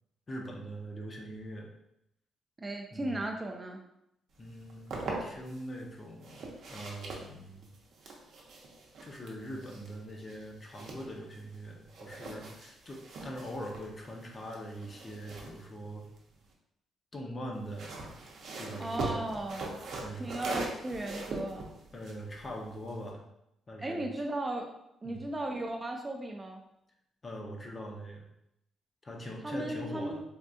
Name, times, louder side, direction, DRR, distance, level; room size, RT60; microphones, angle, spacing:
voice 1, 0.3-1.7 2.9-3.3 4.4-6.4 6.7-7.7 9.0-16.1 17.1-18.2 18.6-19.5 20.0-20.4 21.9-23.2 23.7-24.0 25.0-25.3 27.2-28.3 29.0-30.2, equal, 30° left, 1 dB, 0.6 m, -42 dB
voice 2, 2.6-3.8 18.8-19.8 20.2-21.7 23.8-24.7 25.0-26.6 29.4-30.2, right 1 dB, 20° right, 2 dB, 0.4 m, -36 dB
sound 1, 4.5-5.6 6.2-11.6 11.9-16.5 17.5-23.1, right 3 dB, 65° right, 0.6 m, -42 dB
3.5 x 2.3 x 2.6 m, 0.81 s
cardioid pair, 90°, 0 cm